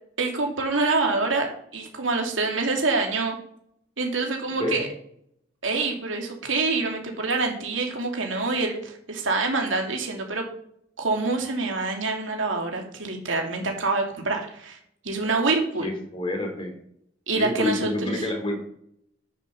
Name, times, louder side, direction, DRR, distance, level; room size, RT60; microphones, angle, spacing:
voice 1, 0.2-3.4 4.0-4.9 5.6-10.5 11.0-14.8 15.0-15.9 17.3-18.3, right 3 dB, 80° right, 2 dB, 2.6 m, -26 dB
voice 2, 15.8-16.8 17.3-18.6, left 2 dB, 30° left, 4 dB, 2.7 m, -28 dB
9.8 x 7.4 x 6.6 m, 0.70 s
head